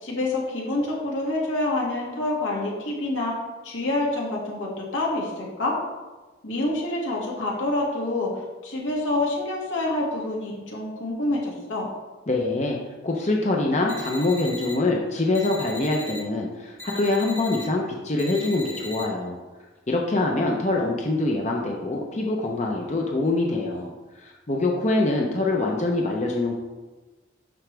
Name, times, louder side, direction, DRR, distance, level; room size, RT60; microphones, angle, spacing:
voice 1, 0.0-3.3 3.6-5.8 6.4-11.9, left 2 dB, 85° left, -3 dB, 2.2 m, -27 dB
voice 2, 12.3-12.8 13.0-19.4 19.9-26.6, left 2 dB, 35° left, 0 dB, 0.7 m, -24 dB
sound 1, 13.9-14.7 15.3-16.2 16.8-17.6 18.2-19.0, left 2 dB, 15° left, 1.1 m, -38 dB
12.0 x 4.8 x 3.4 m, 1.2 s
head